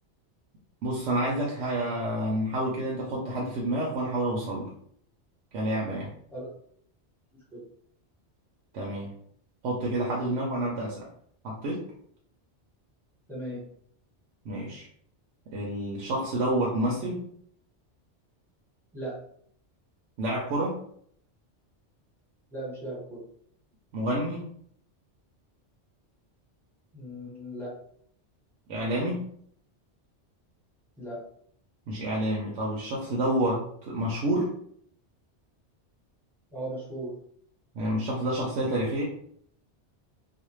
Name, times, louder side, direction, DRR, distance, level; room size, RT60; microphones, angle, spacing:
voice 1, 0.8-4.7 5.5-6.1 8.7-9.1 9.6-11.1 11.4-11.8 14.5-14.9 15.5-17.2 20.2-20.8 23.9-24.5 28.7-29.3 31.9-34.5 37.7-39.0, right 1 dB, 85° right, -3 dB, 0.9 m, -29 dB
voice 2, 13.3-13.6 18.9-19.2 22.5-23.2 26.9-27.7 31.0-31.2 36.5-37.1, right 1 dB, ahead, -7 dB, 1.0 m, -37 dB
2.5 x 2.1 x 3.0 m, 0.64 s
omnidirectional pair, 1.2 m